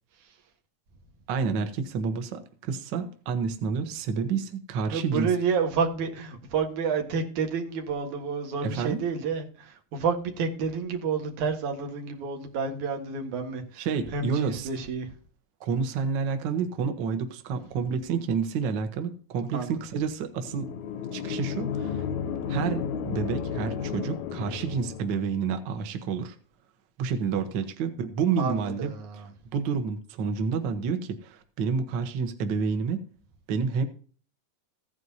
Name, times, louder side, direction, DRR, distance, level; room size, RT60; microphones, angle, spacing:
voice 1, 1.3-5.3 8.6-9.0 13.8-14.7 15.6-20.7 21.1-22.0 22.5-26.4 27.0-28.9 29.5-33.1 33.5-33.9, right 5 dB, 55° right, 1.4 m, -29 dB
voice 2, 4.9-15.2 19.5-19.8 28.4-29.3, right 5 dB, 85° right, 3.0 m, -30 dB
sound 1, 20.4-25.3, left 7 dB, 80° left, 2.1 m, -32 dB
15.5 x 9.5 x 2.8 m
omnidirectional pair, 3.3 m